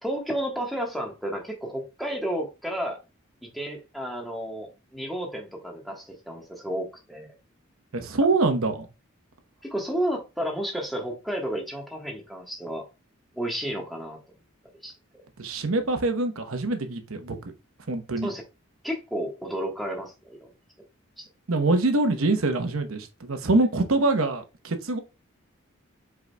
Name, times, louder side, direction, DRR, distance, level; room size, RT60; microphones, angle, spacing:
voice 1, 0.0-3.0 3.4-7.3 9.6-12.8 13.4-14.2 14.8-14.9 18.2-18.4 18.8-20.5 21.2-21.3, equal, ahead, 1.3 m, -32 dB
voice 2, 7.9-8.9 15.4-17.4 17.9-18.3 21.5-25.0, right 2 dB, 85° right, 0.9 m, -24 dB
4.9 x 4.8 x 2.2 m
head